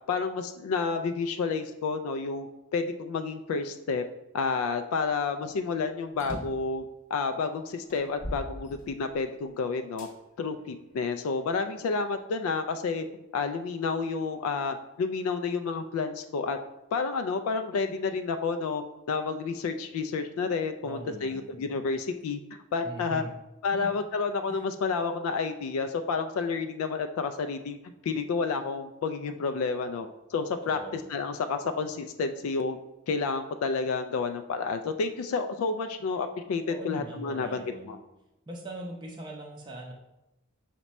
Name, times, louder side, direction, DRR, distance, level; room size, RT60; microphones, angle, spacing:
voice 1, 0.1-4.0 4.3-6.8 7.1-10.1 10.4-13.1 13.3-16.6 16.9-22.4 22.7-23.2 23.6-30.8 31.1-32.8 33.1-38.0, left 4 dB, 90° left, 9 dB, 0.3 m, -30 dB
sound 1, 6.2-6.7 7.4-7.5 7.9-9.3 10.0-10.1 10.9-11.9, equal, 40° left, 0.7 m, -40 dB
voice 2, 20.8-21.6 22.8-23.3 23.7-23.9 24.5-24.7 30.6-31.0 36.7-37.9 38.5-39.9, right 1 dB, 20° right, -1 dB, 0.5 m, -41 dB
5.9 x 2.2 x 4.0 m, 0.94 s
head